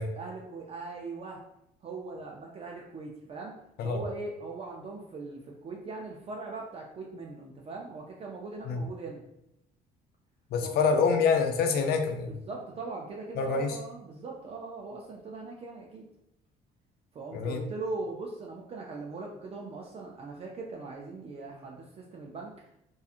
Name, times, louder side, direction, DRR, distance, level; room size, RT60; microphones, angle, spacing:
voice 1, 0.1-1.4 1.8-3.6 3.8-9.2 10.6-11.1 12.3-16.0 17.1-22.5, right 3 dB, 35° right, -1 dB, 0.4 m, -40 dB
voice 2, 10.5-12.3 13.4-13.8 17.3-17.6, left 5 dB, 65° left, 5 dB, 0.5 m, -26 dB
2.8 x 2.3 x 2.4 m, 0.81 s
cardioid pair, 110°, 17 cm